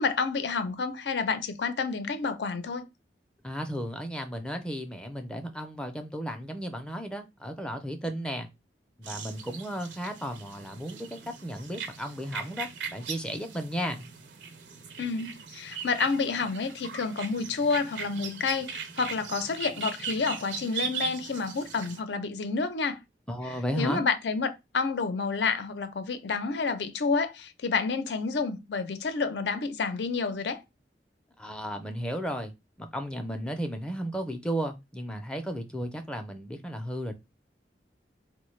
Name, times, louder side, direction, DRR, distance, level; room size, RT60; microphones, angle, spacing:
voice 1, 0.0-2.9 15.0-23.0 23.7-30.6, left 4 dB, 75° left, 0.5 m, -29 dB
voice 2, 3.4-8.5 9.0-14.1 23.3-24.0 31.4-32.5 32.8-37.1, equal, 5° left, 0.4 m, -34 dB
sound 1, 9.0-22.0, right 7 dB, 85° right, 0.6 m, -39 dB
3.9 x 2.1 x 3.1 m
head